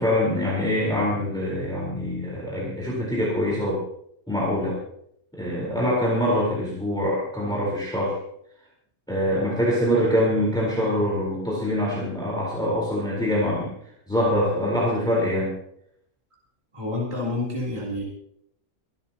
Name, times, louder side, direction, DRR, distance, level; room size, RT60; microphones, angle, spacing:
voice 1, 0.0-3.8 4.3-4.8 5.3-8.1 9.1-13.7 14.1-15.5, equal, 5° left, -5 dB, 4.3 m, -24 dB
voice 2, 16.7-18.0, left 2 dB, 20° right, -6 dB, 3.6 m, -28 dB
25.5 x 12.5 x 3.0 m, 0.72 s
omnidirectional pair, 1.6 m